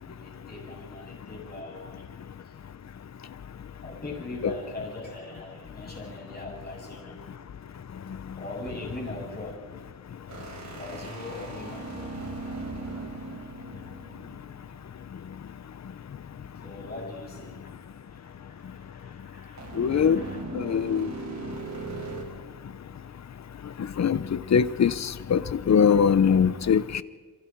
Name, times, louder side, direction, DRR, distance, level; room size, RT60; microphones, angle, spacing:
voice 1, 0.0-2.0 3.8-7.2 8.4-9.6 10.7-12.2 16.6-17.6 18.1-20.4, left 1 dB, 25° left, -1 dB, 7.7 m, -41 dB
sound 1, 10.3-14.8 19.6-22.2, right 4 dB, 55° right, 4.5 m, -38 dB
voice 2, 19.8-20.2 20.5-21.1 24.0-27.0, left 7 dB, 50° left, 16 dB, 0.9 m, -22 dB
29.0 x 23.5 x 4.7 m, 1.5 s
wide cardioid pair, 115°, 34 cm